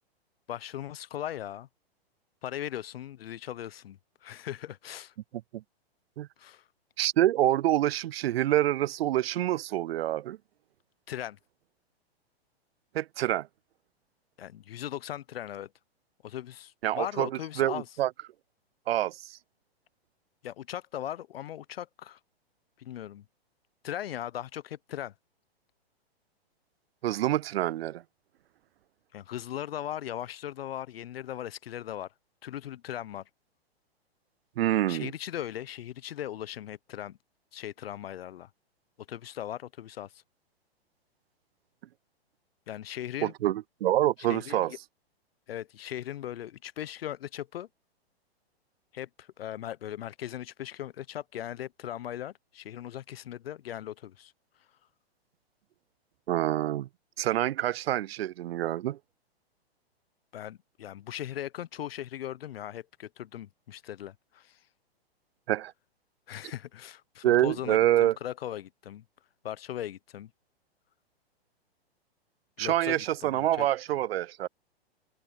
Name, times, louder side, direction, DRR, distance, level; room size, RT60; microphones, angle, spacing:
voice 1, 0.5-1.7 2.4-5.1 6.4-6.6 11.1-11.4 14.4-15.7 16.2-17.9 20.4-22.2 22.8-23.2 23.8-25.1 29.1-32.1 32.4-33.2 34.9-37.2 37.5-38.5 39.1-40.2 42.7-43.3 44.3-44.8 45.5-47.7 48.9-54.3 60.3-64.6 66.3-69.0 69.4-70.3 72.6-73.7, left 11 dB, 65° left, 0.9 m, -38 dB
voice 2, 7.0-10.4 12.9-13.5 16.8-17.3 17.6-18.1 18.9-19.4 27.0-28.0 34.6-35.1 43.2-44.7 56.3-56.9 57.2-59.0 65.5-65.7 67.2-68.2 72.6-74.5, right 13 dB, 70° right, 0.4 m, -26 dB
open air
hypercardioid pair, 120°, 32 cm